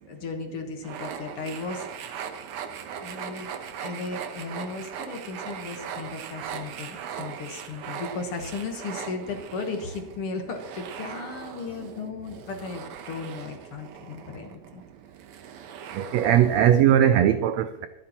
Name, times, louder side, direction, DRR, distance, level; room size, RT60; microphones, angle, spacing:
voice 1, 0.1-2.1 2.9-3.5 3.8-14.8, left 4 dB, 55° left, 1.9 m, -36 dB
sound 1, 0.8-17.2, right 7 dB, 70° right, 1.4 m, -39 dB
voice 2, 16.0-17.9, right 10 dB, 85° right, 1.5 m, -19 dB
23.5 x 8.2 x 2.9 m
omnidirectional pair, 3.6 m